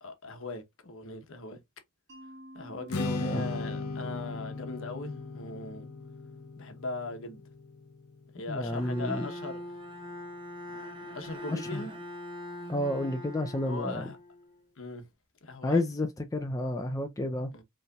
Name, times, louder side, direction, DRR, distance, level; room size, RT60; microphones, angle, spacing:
voice 1, 0.0-1.6 2.5-5.9 6.6-7.4 8.3-9.6 11.1-11.9 13.6-14.2 14.8-15.0 15.4-15.8 17.5-17.6, left 3 dB, 60° left, 1.0 m, -39 dB
Mallet percussion, 2.1-6.9, equal, 55° right, 1.7 m, -53 dB
Strum, 2.9-9.2, left 3 dB, 90° left, 0.7 m, -38 dB
voice 2, 8.5-9.3 11.5-11.8 12.7-14.1 15.6-17.5, left 1 dB, 15° left, 0.4 m, -31 dB
Bowed string instrument, 8.6-14.6, left 1 dB, 25° right, 0.9 m, -43 dB
5.3 x 3.2 x 2.3 m
head